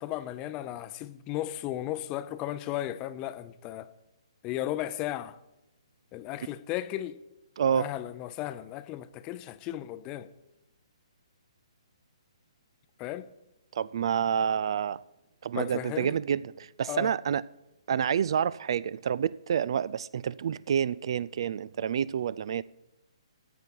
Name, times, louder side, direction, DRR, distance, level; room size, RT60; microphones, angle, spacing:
voice 1, 0.0-3.9 4.4-5.4 6.1-7.2 7.7-10.3 13.0-13.3 15.5-16.1 16.9-17.1, left 13 dB, 25° left, 0.6 m, -35 dB
voice 2, 7.6-7.9 13.7-15.0 15.4-17.4 17.9-22.6, right 8 dB, 55° right, 0.3 m, -28 dB
14.0 x 8.2 x 4.6 m
figure-of-eight pair, 135°, 3 cm